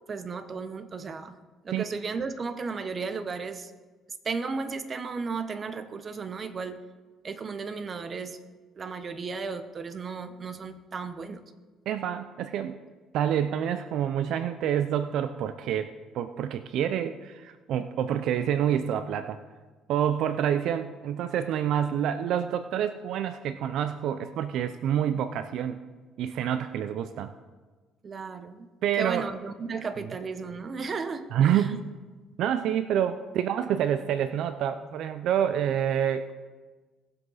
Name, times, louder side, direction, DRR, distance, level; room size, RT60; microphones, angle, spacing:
voice 1, 0.1-1.4 1.6-3.7 4.2-6.8 7.2-8.4 8.8-11.4 28.0-28.7 29.0-31.3, right 4 dB, 35° right, 10 dB, 0.9 m, -34 dB
voice 2, 11.9-12.8 13.1-19.4 19.9-25.8 26.2-27.3 28.8-29.3 31.3-31.9 32.4-36.3, right 9 dB, 70° right, 11 dB, 0.5 m, -27 dB
18.5 x 7.9 x 4.1 m, 1.3 s
cardioid pair, 105°, 0 cm